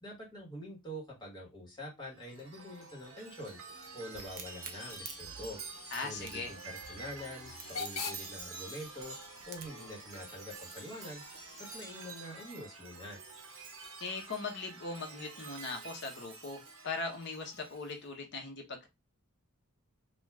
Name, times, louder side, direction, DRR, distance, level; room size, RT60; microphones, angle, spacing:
voice 1, 0.0-3.6 3.9-5.6 6.0-9.2 9.5-11.2 11.6-13.2, equal, 20° left, -2 dB, 1.2 m, -45 dB
Chime, 2.1-18.0, right 4 dB, 65° right, 0.9 m, -48 dB
Hiss / Train / Alarm, 3.0-12.7, left 4 dB, 85° left, 0.8 m, -49 dB
Crack, 4.2-9.9, right 7 dB, 45° right, 0.5 m, -49 dB
voice 2, 5.9-6.5 14.0-18.9, left 3 dB, 55° left, 3 dB, 0.8 m, -40 dB
2.4 x 2.3 x 3.2 m, 0.21 s
head